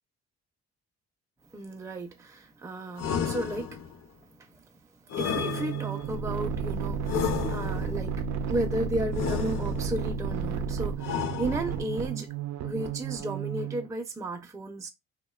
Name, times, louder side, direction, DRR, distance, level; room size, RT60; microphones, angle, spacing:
voice 1, 1.5-3.9 4.2-4.6 5.0-8.1 8.5-12.3 12.6-14.9, right 1 dB, 10° right, 0.4 m, -34 dB
sound 1, 3.0-4.0 5.1-6.2 7.1-8.0 9.1-10.1 11.0-12.0, left 7 dB, 60° left, 0.6 m, -32 dB
sound 2, 5.3-13.9, right 6 dB, 70° right, 0.4 m, -32 dB
2.6 x 2.2 x 2.2 m
cardioid pair, 90°, 30 cm